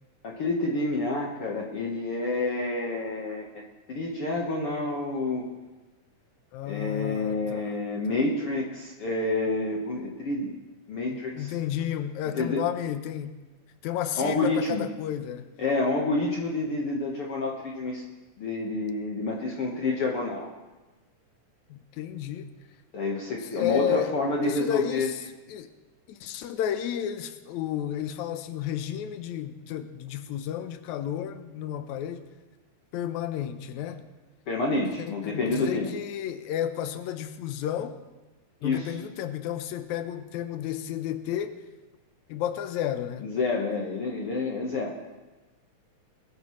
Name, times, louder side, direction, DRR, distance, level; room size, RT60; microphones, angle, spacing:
voice 1, 0.2-3.6 3.9-5.5 6.7-10.5 10.9-11.5 12.3-12.6 14.2-14.9 15.6-18.0 18.4-20.5 22.9-25.1 34.5-35.9 38.6-39.0 43.2-44.9, left 2 dB, 55° left, -1 dB, 1.8 m, -28 dB
voice 2, 6.5-7.8 11.1-13.4 13.8-15.5 21.7-22.5 23.5-24.1 24.4-25.7 26.1-32.3 32.9-34.0 35.0-38.0 38.6-41.6 42.3-43.3, left 10 dB, 75° left, 9 dB, 2.0 m, -32 dB
22.0 x 13.0 x 3.2 m, 1.1 s
omnidirectional pair, 3.8 m